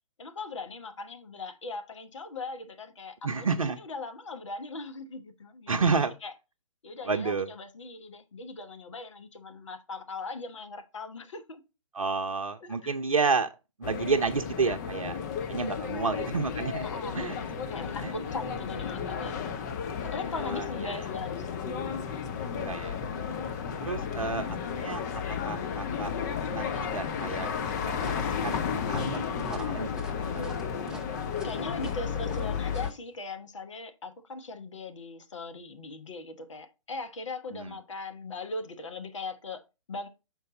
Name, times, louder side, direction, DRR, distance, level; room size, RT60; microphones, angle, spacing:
voice 1, 0.2-6.3 6.8-11.6 12.6-12.9 15.8-16.3 16.8-19.4 20.0-21.6 22.2-22.5 24.1-24.4 31.4-40.1, left 3 dB, 60° left, 1.0 m, -40 dB
voice 2, 3.2-3.8 5.7-6.1 7.1-7.5 11.9-13.5 13.8-15.2 15.5-16.9 17.1-17.3 18.0-18.1 20.4-21.1 22.5-23.0 23.8-25.0 25.4-26.1 26.5-27.5 27.8-29.9 30.2-30.5 37.5-37.7, right 4 dB, 75° right, 0.7 m, -30 dB
sound 1, 13.8-32.9, left 7 dB, 30° left, 0.7 m, -33 dB
sound 2, 28.0-32.9, right 1 dB, 5° right, 0.5 m, -45 dB
6.7 x 4.6 x 3.9 m
figure-of-eight pair, 125°, 18 cm